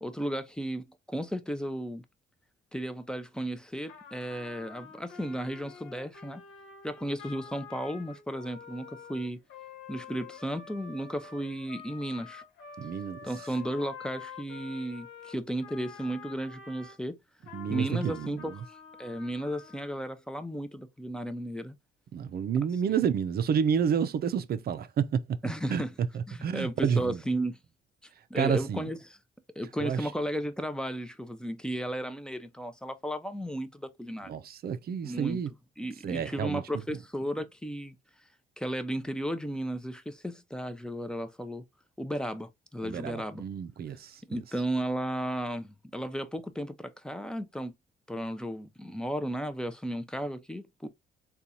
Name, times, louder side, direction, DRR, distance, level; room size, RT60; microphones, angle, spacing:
voice 1, 0.0-2.0 2.7-6.4 6.8-9.4 9.9-12.4 13.2-17.2 17.7-18.5 19.0-21.8 22.9-23.0 25.4-25.9 26.3-27.6 28.3-29.2 29.6-34.4 35.0-35.4 35.8-37.9 38.6-41.6 42.0-43.4 44.3-47.7 48.1-50.9, right 1 dB, 5° left, 0.5 m, -34 dB
Trumpet, 3.9-17.0 17.4-20.0, left 6 dB, 80° left, 1.1 m, -48 dB
voice 2, 12.8-13.2 17.5-18.6 22.1-27.2 28.4-28.9 29.8-30.1 34.3-35.5 36.0-36.6 42.8-44.4, right 7 dB, 50° right, 0.5 m, -30 dB
3.8 x 2.4 x 2.7 m
cardioid pair, 90°, 20 cm